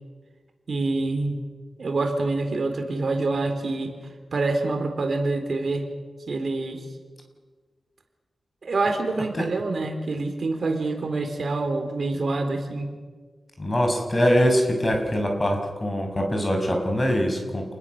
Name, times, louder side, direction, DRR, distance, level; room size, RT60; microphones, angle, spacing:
voice 1, 0.7-1.4 1.8-3.9 4.3-5.8 6.3-6.8 8.6-12.9, right 3 dB, 60° right, 5 dB, 3.7 m, -26 dB
voice 2, 13.6-17.6, equal, 25° left, 3 dB, 6.0 m, -23 dB
29.5 x 20.5 x 6.7 m, 1.5 s
wide cardioid pair, 85°, 0 cm